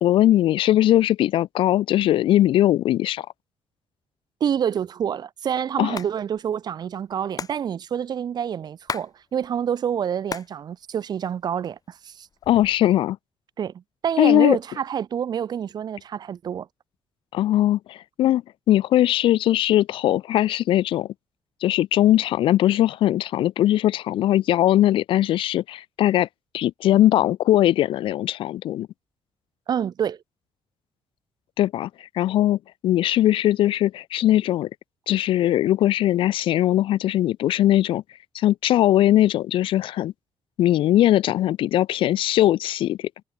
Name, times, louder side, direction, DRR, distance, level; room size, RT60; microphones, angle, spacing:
voice 1, 0.0-3.3 5.8-6.0 12.5-13.2 14.2-14.6 17.3-18.4 18.7-21.1 21.6-26.3 26.5-28.9 31.6-31.9 32.2-34.7 35.1-38.0 38.3-40.1 40.6-43.0, left 13 dB, 80° left, 0.4 m, -20 dB
voice 2, 4.4-12.3 13.6-16.7 29.7-30.2, right 8 dB, 50° right, 0.5 m, -27 dB
Hands, 5.7-6.1 6.4-6.5 6.7-9.1 9.4-10.6 10.9-11.7 12.3-12.9, left 6 dB, 45° left, 2.5 m, -35 dB
cardioid pair, 90°, 9 cm